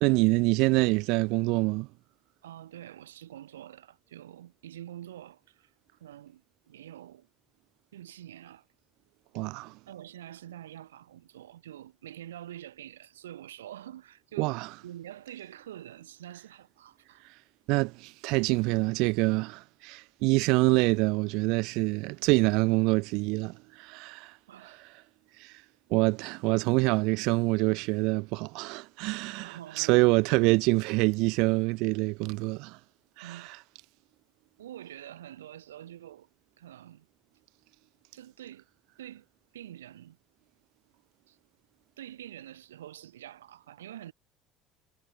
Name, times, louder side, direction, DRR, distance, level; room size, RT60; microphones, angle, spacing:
voice 1, 0.0-1.9 9.3-9.8 14.4-14.7 17.2-17.3 17.7-24.4 25.4-25.6 25.9-32.8 33.2-33.5, right 26 dB, 70° right, 0.6 m, -26 dB
voice 2, 2.4-5.7 6.0-7.3 7.9-8.7 9.9-17.2 24.5-24.8 29.4-30.3 33.2-33.6 34.6-36.3 36.6-37.1 38.1-38.6 39.0-39.3 39.5-40.2 41.3-41.4 42.0-44.1, right 12 dB, 85° right, 1.9 m, -46 dB
hypercardioid pair, 65°, 0 cm